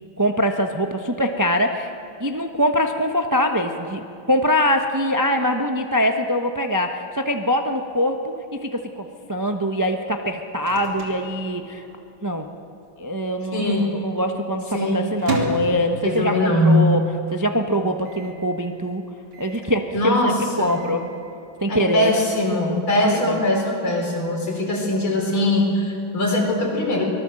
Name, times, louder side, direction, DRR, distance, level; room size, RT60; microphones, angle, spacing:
voice 1, 0.2-1.9 2.2-8.2 8.5-11.8 12.2-12.5 13.0-17.0 17.3-19.0 19.4-20.3 20.6-21.1 21.6-22.1 22.9-23.4, equal, 20° right, 4 dB, 0.4 m, -23 dB
Microwave oven, 10.1-12.2 12.5-12.6 12.8-13.4 13.9-16.6 17.0-17.1 17.3-17.4 18.0-18.4 19.3-19.8 20.4-21.1, right 3 dB, 80° right, 3.7 m, -33 dB
voice 2, 13.5-13.9 14.7-15.1 16.0-17.0 19.9-20.8 21.7-27.0, left 1 dB, 75° left, -1 dB, 5.3 m, -21 dB
24.5 x 19.0 x 7.7 m, 2.7 s
omnidirectional pair, 2.3 m